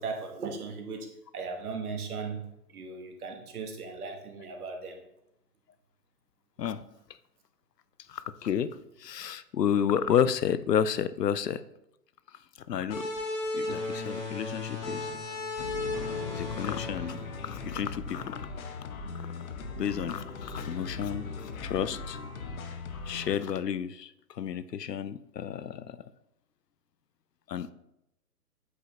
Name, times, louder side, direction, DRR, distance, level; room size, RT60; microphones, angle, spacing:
voice 1, 0.0-2.5 2.7-5.0, right 4 dB, 65° right, 4 dB, 1.3 m, -37 dB
voice 2, 8.1-8.7 9.0-11.6 12.7-13.1 13.5-15.2 16.3-18.4 19.8-22.2 23.1-24.1 24.4-26.0 27.5-27.7, left 8 dB, 90° left, 14 dB, 0.6 m, -31 dB
sound 1, 12.9-18.2, left 3 dB, 35° left, 2.6 m, -35 dB
sound 2, 15.6-23.4, left 4 dB, 60° left, 0.9 m, -39 dB
8.1 x 5.0 x 2.8 m, 0.82 s
hypercardioid pair, 135°, 47 cm